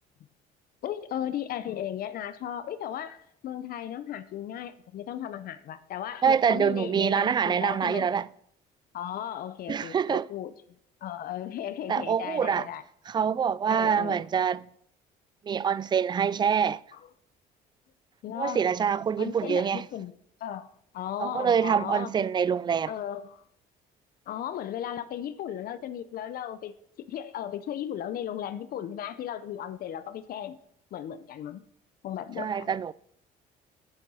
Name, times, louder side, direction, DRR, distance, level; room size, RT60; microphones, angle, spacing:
voice 1, 0.8-8.1 8.9-10.5 11.0-12.8 13.7-14.2 18.2-18.6 19.2-20.1 20.4-22.1 22.9-23.4 24.3-26.7 27.1-30.6 30.9-31.6 32.0-32.7, left 10 dB, 60° left, 0.7 m, -36 dB
voice 2, 6.2-8.3 9.7-10.3 11.9-12.7 13.1-14.7 15.4-16.8 18.3-19.9 21.2-22.9 32.4-32.9, right 7 dB, 25° right, 0.3 m, -25 dB
9.0 x 8.5 x 5.5 m
cardioid pair, 110°, 17 cm